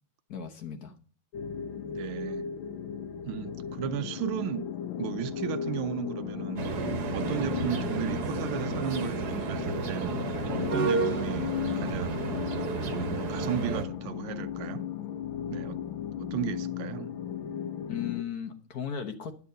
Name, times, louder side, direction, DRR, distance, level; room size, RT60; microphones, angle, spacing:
voice 1, 0.3-1.0 7.4-7.6 17.9-19.3, left 8 dB, 55° left, 1.3 m, -36 dB
sound 1, 1.3-18.2, left 9 dB, 75° left, 1.5 m, -35 dB
voice 2, 1.9-2.5 3.2-4.7 5.0-6.7 7.1-10.2 10.5-12.3 12.9-14.9 15.5-15.8 16.2-17.1, right 11 dB, 80° right, 1.5 m, -35 dB
sound 2, 6.6-13.8, right 5 dB, 55° right, 1.6 m, -32 dB
11.0 x 8.5 x 6.6 m
omnidirectional pair, 2.3 m